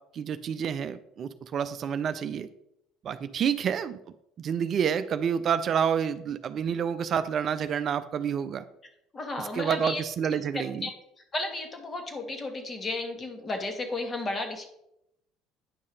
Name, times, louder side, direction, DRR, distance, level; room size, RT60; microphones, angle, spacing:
voice 1, 0.1-2.5 3.0-4.0 4.4-8.7 9.6-10.9, right 7 dB, 50° right, 11 dB, 0.4 m, -28 dB
voice 2, 9.1-10.0 10.3-10.9 11.3-14.7, left 2 dB, 30° left, 4 dB, 1.7 m, -33 dB
9.6 x 5.5 x 3.3 m, 0.79 s
hypercardioid pair, 65°, 0 cm